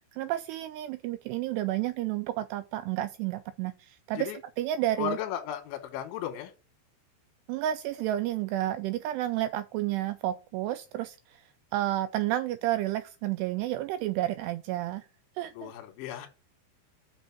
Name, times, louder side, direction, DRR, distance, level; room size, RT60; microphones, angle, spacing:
voice 1, 0.1-4.3 4.6-5.2 7.5-11.4 11.7-15.1 15.4-15.7, right 14 dB, 90° right, 2.3 m, -31 dB
voice 2, 5.0-6.5 15.6-16.3, left 11 dB, 85° left, 3.5 m, -35 dB
6.4 x 6.1 x 5.8 m
omnidirectional pair, 5.3 m